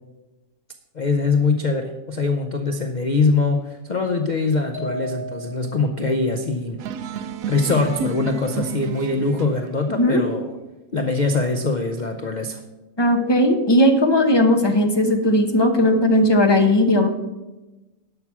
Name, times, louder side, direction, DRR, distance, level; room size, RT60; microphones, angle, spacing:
voice 1, 0.9-6.8 7.5-10.5 10.9-12.6, left 3 dB, 50° left, 5 dB, 0.5 m, -22 dB
sound 1, 4.7-5.9, right 1 dB, 10° right, 2.9 m, -33 dB
sound 2, 6.8-9.7, right 5 dB, 70° right, 1.0 m, -30 dB
voice 2, 13.0-17.1, left 1 dB, 20° left, 4 dB, 0.8 m, -17 dB
11.5 x 6.0 x 6.0 m, 1.1 s
omnidirectional pair, 1.7 m